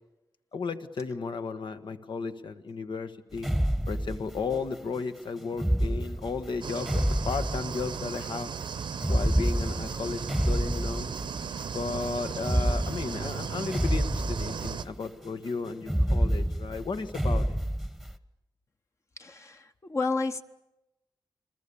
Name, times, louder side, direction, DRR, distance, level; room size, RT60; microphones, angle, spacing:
voice 1, 0.5-3.5 3.9-8.5 9.1-11.1 11.7-17.6, left 4 dB, 75° left, 9 dB, 1.5 m, -34 dB
sound 1, 3.3-4.7 5.5-8.0 9.0-11.5 12.4-14.9 15.8-18.1, equal, ahead, 1.2 m, -28 dB
sound 2, 6.6-14.8, right 6 dB, 75° right, 1.0 m, -36 dB
voice 2, 19.2-20.4, left 3 dB, 35° left, 6 dB, 1.1 m, -31 dB
29.5 x 22.0 x 7.1 m, 0.95 s
wide cardioid pair, 115°, 8 cm